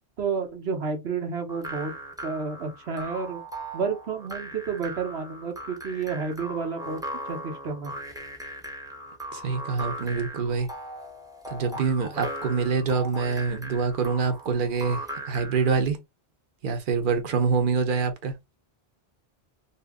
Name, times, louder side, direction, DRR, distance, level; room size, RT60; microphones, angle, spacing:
voice 1, 0.2-1.9 2.2-3.4 3.7-7.0 7.3-7.9, right 5 dB, 85° right, 1.3 m, -30 dB
sound 1, 1.5-15.7, right 1 dB, 5° right, 0.8 m, -38 dB
voice 2, 9.3-10.7 11.5-15.0 15.3-16.0 16.6-18.3, right 5 dB, 55° right, 0.9 m, -25 dB
2.9 x 2.8 x 3.5 m
omnidirectional pair, 1.1 m